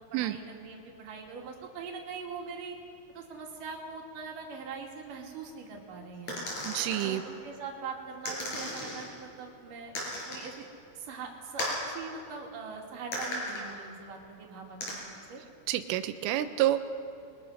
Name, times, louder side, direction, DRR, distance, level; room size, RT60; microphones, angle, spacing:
voice 1, 0.1-2.8 3.1-6.4 7.0-10.7 11.0-15.4, right 5 dB, 45° right, 0 dB, 3.7 m, -42 dB
sound 1, 6.3-7.1 8.2-9.1 9.9-10.5 11.6-11.8 13.1-13.6 14.8-14.9, left 1 dB, 35° left, 7.4 m, -35 dB
voice 2, 6.6-7.2 15.7-16.8, right 13 dB, 80° right, 10 dB, 3.4 m, -28 dB
28.5 x 23.0 x 6.5 m, 2.5 s
omnidirectional pair, 5.8 m